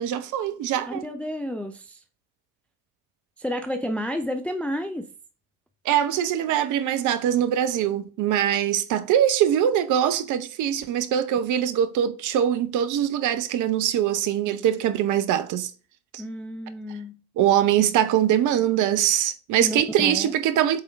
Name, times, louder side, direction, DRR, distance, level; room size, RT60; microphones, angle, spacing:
voice 1, 0.0-1.0 5.8-15.7 16.1-16.2 17.4-20.8, right 10 dB, 45° right, 0.9 m, -23 dB
voice 2, 0.9-2.0 3.4-5.1 16.2-17.1 19.6-20.3, equal, 5° left, 0.5 m, -31 dB
7.8 x 3.7 x 3.4 m
hypercardioid pair, 75°, 45 cm